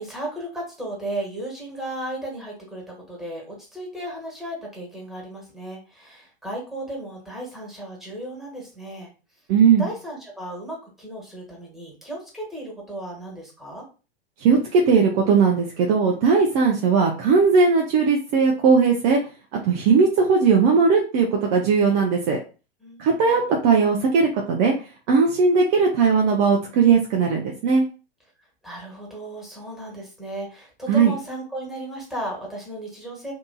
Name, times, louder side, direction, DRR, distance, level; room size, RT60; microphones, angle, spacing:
voice 1, 0.0-9.1 9.8-13.9 22.8-23.4 28.4-33.3, right 1 dB, ahead, -3 dB, 1.3 m, -35 dB
voice 2, 9.5-9.9 14.4-19.2 19.5-22.4 23.0-24.7 25.1-27.8 30.9-31.1, right 5 dB, 35° right, 0 dB, 0.6 m, -18 dB
2.8 x 2.6 x 2.2 m, 0.34 s
figure-of-eight pair, 100°, 31 cm